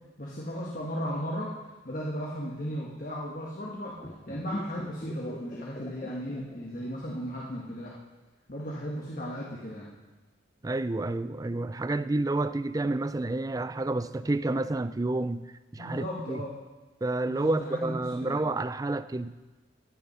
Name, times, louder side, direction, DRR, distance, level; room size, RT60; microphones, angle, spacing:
voice 1, 0.2-1.5 1.8-4.0 4.3-8.0 8.5-9.9 15.8-16.5 17.3-18.4, equal, 40° left, 1.7 m, -35 dB
sound 1, 3.9-7.3 7.6-7.7, left 1 dB, 25° left, 1.0 m, -44 dB
voice 2, 10.6-16.4 17.0-19.3, right 2 dB, 15° right, 0.3 m, -29 dB
14.5 x 10.5 x 5.6 m
head